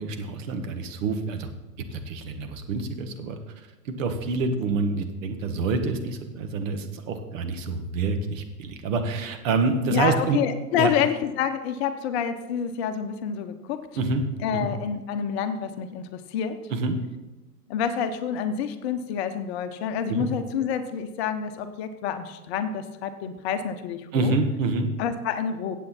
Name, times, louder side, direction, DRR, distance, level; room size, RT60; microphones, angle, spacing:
voice 1, 0.0-1.5 1.9-10.4 10.8-10.9 14.0-14.2 14.5-14.7 16.7-17.0 20.1-20.3 24.1-24.9, right 3 dB, 50° right, 6 dB, 1.7 m, -27 dB
voice 2, 9.9-13.8 14.4-16.6 17.7-24.3 25.0-25.8, left 8 dB, 40° left, 9 dB, 1.0 m, -28 dB
15.0 x 8.3 x 4.4 m, 1.1 s
figure-of-eight pair, 110°, 48 cm